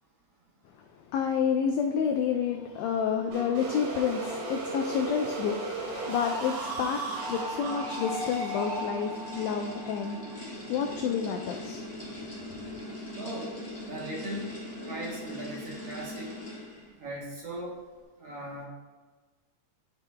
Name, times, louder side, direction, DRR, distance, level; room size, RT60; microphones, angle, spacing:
voice 1, 1.1-10.2 10.7-11.8, left 7 dB, 90° left, 3 dB, 1.5 m, -29 dB
sound 1, 3.3-11.0, right 2 dB, 80° right, 3.1 m, -36 dB
sound 2, 4.8-17.0, left 1 dB, 35° left, 0.5 m, -42 dB
voice 2, 13.2-13.5 13.9-14.5 14.8-16.3 17.0-17.8 18.2-18.7, right 1 dB, 60° right, -3 dB, 1.9 m, -38 dB
11.0 x 5.7 x 2.2 m, 1.3 s
omnidirectional pair, 3.6 m